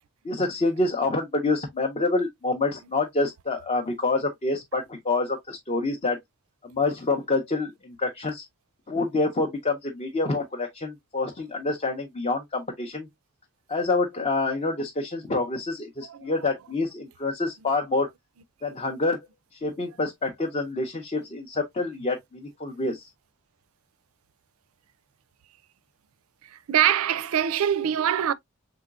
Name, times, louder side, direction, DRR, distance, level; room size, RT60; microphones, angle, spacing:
voice 1, 0.2-6.2 6.6-8.5 8.9-13.1 13.7-18.1 18.6-19.3 19.5-23.1, left 3 dB, 30° left, 0.6 m, -27 dB
voice 2, 26.4-28.3, right 10 dB, 85° right, 0.4 m, -24 dB
4.9 x 3.8 x 2.3 m
head